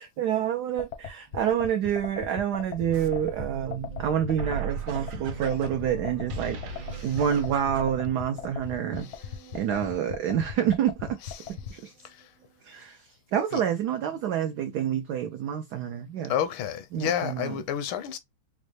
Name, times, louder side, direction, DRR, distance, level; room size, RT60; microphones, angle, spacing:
voice 1, 0.0-9.1 9.5-11.4 11.7-11.9 12.6-16.3 16.9-17.6, right 9 dB, 85° right, 0.8 m, -28 dB
sound 1, 0.8-11.7, left 8 dB, 60° left, 0.7 m, -37 dB
sound 2, 2.9-8.1, right 6 dB, 70° right, 1.5 m, -37 dB
sound 3, 5.2-12.8, right 3 dB, 35° right, 0.5 m, -53 dB
voice 2, 16.3-18.2, left 9 dB, 80° left, 1.4 m, -29 dB
5.3 x 2.1 x 3.1 m
omnidirectional pair, 2.3 m